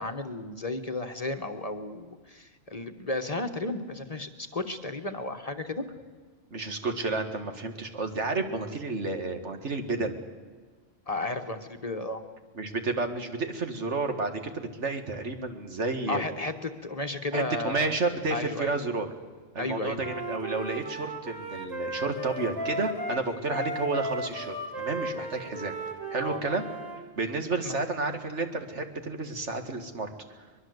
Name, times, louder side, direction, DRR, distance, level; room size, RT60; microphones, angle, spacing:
voice 1, 0.0-5.8 11.1-12.2 16.1-18.0 18.3-18.7 19.6-20.0 26.2-26.4 27.2-27.8, left 2 dB, 30° left, 7 dB, 1.2 m, -33 dB
voice 2, 6.5-10.2 12.6-16.2 17.3-19.1 19.5-25.7 26.1-26.6 27.2-30.1, right 3 dB, 70° right, 6 dB, 2.3 m, -31 dB
Wind instrument woodwind instrument, 20.0-27.0, right 1 dB, 20° right, 3.6 m, -35 dB
23.0 x 21.5 x 8.0 m, 1.4 s
omnidirectional pair, 1.2 m